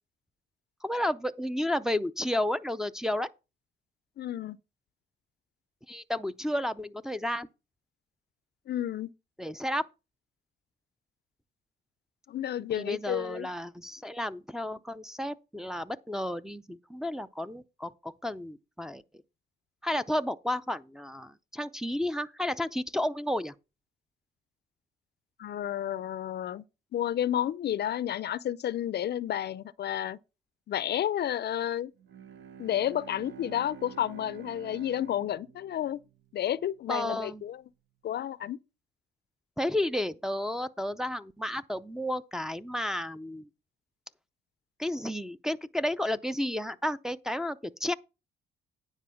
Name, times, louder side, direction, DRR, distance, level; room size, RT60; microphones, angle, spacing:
voice 1, 0.8-3.3 5.9-7.5 9.4-9.8 12.7-19.0 19.8-23.5 36.9-37.4 39.6-43.5 44.8-47.9, left 1 dB, 5° right, 0.5 m, -32 dB
voice 2, 4.2-4.6 8.7-9.1 12.3-13.5 25.4-26.6 26.9-30.2 30.7-31.9 32.6-36.0 36.3-37.6 38.0-38.6, left 11 dB, 55° left, 0.5 m, -31 dB
Bowed string instrument, 32.0-36.8, right 7 dB, 70° right, 0.9 m, -49 dB
9.9 x 4.4 x 7.0 m
cardioid pair, 90°, 20 cm